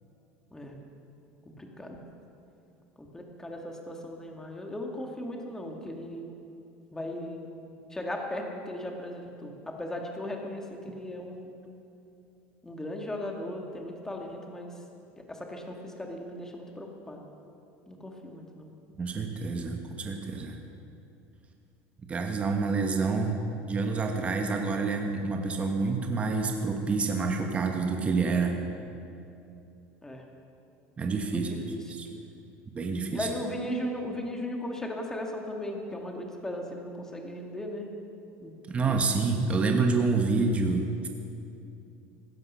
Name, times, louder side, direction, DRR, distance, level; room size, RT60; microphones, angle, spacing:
voice 1, 1.6-2.0 3.0-6.2 6.9-7.5 7.9-11.5 12.6-14.7 15.3-17.2 17.9-18.7 30.0-30.2 31.3-31.9 33.1-37.9 38.4-38.5 38.8-39.3, left 1 dB, 10° left, 1 dB, 2.0 m, -37 dB
voice 2, 19.0-20.6 22.1-23.4 23.7-28.6 31.0-31.5 31.9-32.1 32.7-33.3 38.7-41.1, right 4 dB, 25° right, 3 dB, 1.3 m, -28 dB
16.0 x 12.5 x 5.6 m, 2.7 s
supercardioid pair, 130°, 6 cm